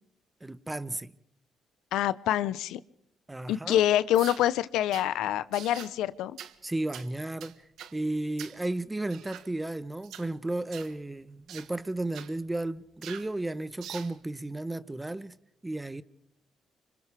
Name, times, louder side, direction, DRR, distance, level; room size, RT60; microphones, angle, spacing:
voice 1, 0.4-1.1 3.3-3.8 6.6-7.5 7.9-15.3 15.6-16.0, right 2 dB, 15° right, 1.1 m, -34 dB
voice 2, 1.9-2.8 3.5-6.4, left 12 dB, 90° left, 0.8 m, -26 dB
sound 1, 4.1-4.5 4.9-5.1 5.5-5.9 6.4-6.6 6.9-7.1 7.4-8.0 8.4-8.6 9.1-9.5 10.0-10.3 10.7-10.9 11.5-11.7 12.1-12.3 13.0-13.3 13.8-14.1, right 10 dB, 80° right, 1.5 m, -44 dB
29.5 x 26.0 x 3.5 m
cardioid pair, 90°, 0 cm